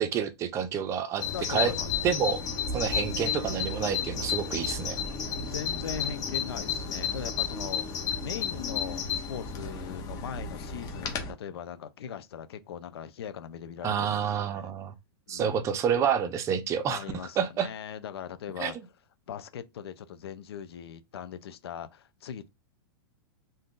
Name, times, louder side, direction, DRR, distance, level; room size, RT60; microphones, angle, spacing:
voice 1, 0.0-1.7 2.0-2.4 2.7-5.0 13.8-14.9 15.3-17.0 17.4-17.7 18.6-18.7, right 8 dB, 25° right, 0.5 m, -28 dB
Bird vocalization bird call bird song, 1.2-11.3, left 6 dB, 30° left, 0.8 m, -32 dB
voice 2, 1.3-1.9 2.3-2.5 5.4-14.7 15.3-15.6 16.6-18.8 19.3-22.5, left 8 dB, 80° left, 0.6 m, -40 dB
2.6 x 2.3 x 3.7 m
hypercardioid pair, 140°, 13 cm